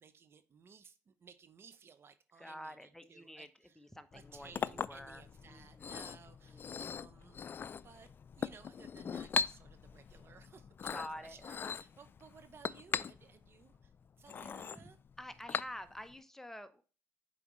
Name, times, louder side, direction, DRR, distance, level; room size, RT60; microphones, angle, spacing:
voice 1, 0.0-3.8 4.1-13.9 14.2-15.0, right 6 dB, 45° right, 0.8 m, -59 dB
voice 2, 2.4-3.5 3.8-6.1 6.5-6.8 10.9-11.4 14.3-14.9 15.2-16.8, equal, 5° left, 0.8 m, -49 dB
Chink clink, 4.1-16.1, left 6 dB, 40° left, 0.3 m, -41 dB
6.9 x 4.9 x 3.1 m
supercardioid pair, 70°, 6 cm